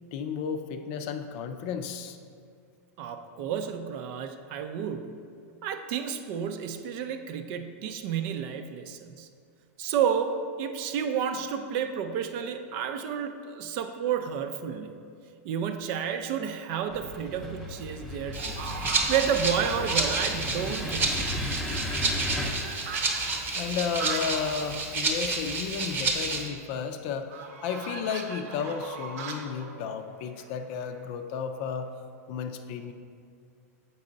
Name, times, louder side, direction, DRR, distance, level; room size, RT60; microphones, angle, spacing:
voice 1, 0.1-2.2 23.5-27.3 27.6-31.9 32.3-32.9, left 6 dB, 50° left, 7 dB, 0.5 m, -33 dB
voice 2, 3.0-5.2 5.6-9.3 9.8-15.0 15.4-21.3, right 8 dB, 45° right, 7 dB, 0.5 m, -31 dB
sound 1, 16.1-16.5 17.0-17.5 17.8-17.9 18.4-20.6 20.9-21.0 21.2-24.6 24.9-25.0 25.3-25.4 27.3-31.0, right 4 dB, 65° right, 0.9 m, -40 dB
sound 2, 16.9-22.5, left 1 dB, ahead, 0.7 m, -35 dB
Rattle (instrument), 18.3-26.4, right 3 dB, 25° right, 0.9 m, -30 dB
7.4 x 5.4 x 3.9 m, 2.3 s
supercardioid pair, 140°, 9 cm